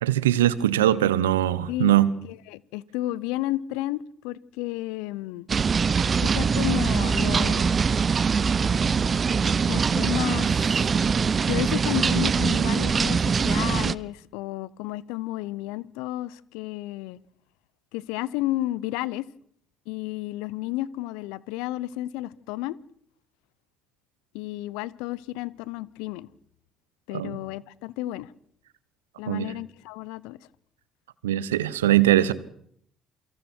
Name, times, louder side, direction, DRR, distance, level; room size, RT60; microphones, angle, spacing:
voice 1, 0.0-2.1 27.1-27.3 29.3-29.5 31.2-32.3, right 13 dB, 85° right, 1.0 m, -21 dB
voice 2, 2.3-5.5 6.2-7.9 9.7-10.7 11.5-17.2 17.9-19.3 19.9-22.8 24.3-26.3 27.1-28.3 29.2-30.4, left 16 dB, 75° left, 0.8 m, -32 dB
sound 1, 5.5-14.0, right 5 dB, 40° right, 0.9 m, -23 dB
28.5 x 24.0 x 4.6 m
hypercardioid pair, 50°, 0 cm